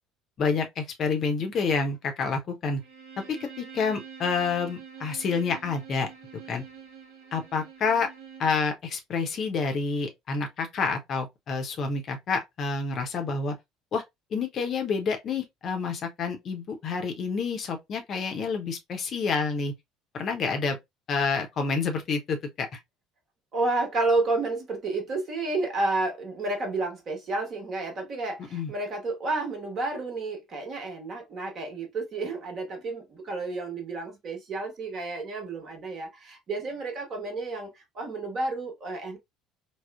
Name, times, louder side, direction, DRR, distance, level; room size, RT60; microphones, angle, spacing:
voice 1, 0.4-2.8 3.3-6.1 6.5-6.6 7.3-8.1 8.4-13.6 13.9-14.0 14.3-19.7 20.1-20.8 21.1-22.8 28.5-28.7, left 5 dB, 45° left, 0.6 m, -28 dB
Bowed string instrument, 2.8-8.6, right 7 dB, 65° right, 0.8 m, -46 dB
voice 2, 23.5-39.2, right 2 dB, 40° right, 1.1 m, -31 dB
3.5 x 2.0 x 2.3 m
figure-of-eight pair, 60°, 0 cm